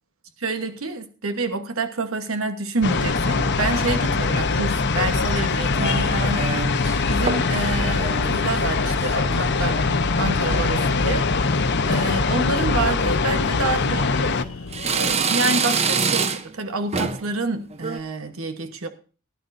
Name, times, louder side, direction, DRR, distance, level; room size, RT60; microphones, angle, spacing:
voice 1, 0.4-14.6 14.9-18.9, right 3 dB, 90° right, 8 dB, 1.2 m, -28 dB
sound 1, 2.8-14.4, left 4 dB, 60° left, 0.9 m, -22 dB
sound 2, 3.4-4.1 4.8-5.3 5.7-7.0 7.3-7.6 7.9-9.9 10.2-10.7 11.2-11.6 11.9-12.0 12.9-13.1 13.7-14.4 14.7-16.6 16.9-17.3 17.7-18.0, right 5 dB, 30° right, 0.8 m, -27 dB
sound 3, 5.8-15.2, left 3 dB, 85° left, 0.8 m, -35 dB
20.0 x 11.0 x 2.7 m, 0.36 s
head